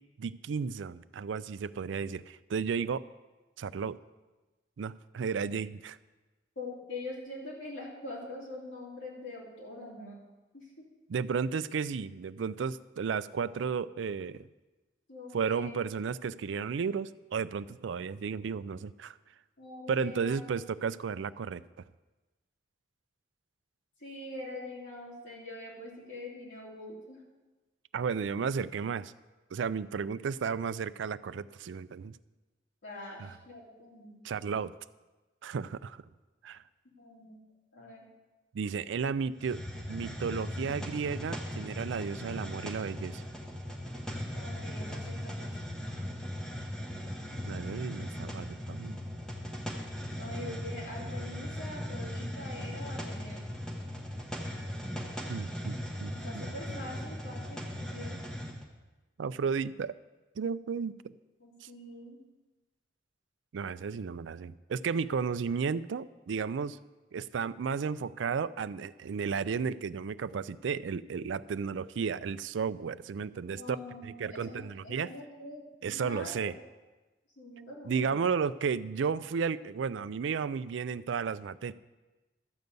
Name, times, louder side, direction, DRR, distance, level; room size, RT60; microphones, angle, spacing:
voice 1, 0.2-3.0 3.6-4.0 4.8-6.0 11.1-14.5 15.3-19.1 19.9-21.6 27.9-29.1 29.5-32.2 33.2-33.3 34.2-34.7 35.4-36.0 36.4-36.6 38.5-39.6 39.9-43.2 47.4-49.0 55.3-56.1 59.2-60.0 60.4-61.0 61.6-61.7 63.5-66.8 67.1-73.8 74.0-75.1 75.8-76.5 77.8-81.7, right 6 dB, 80° right, 15 dB, 0.4 m, -33 dB
voice 2, 6.5-10.2 10.5-10.9 15.1-15.7 19.6-20.3 24.0-27.2 32.8-34.2 36.9-37.4 37.7-38.0 44.3-45.5 50.2-53.4 56.1-58.2 61.4-62.2 73.5-76.5 77.4-78.2, left 2 dB, 90° left, -5 dB, 3.0 m, -44 dB
Hiss, 39.4-58.6, equal, 5° left, 1.1 m, -38 dB
12.5 x 5.3 x 8.0 m, 1.2 s
head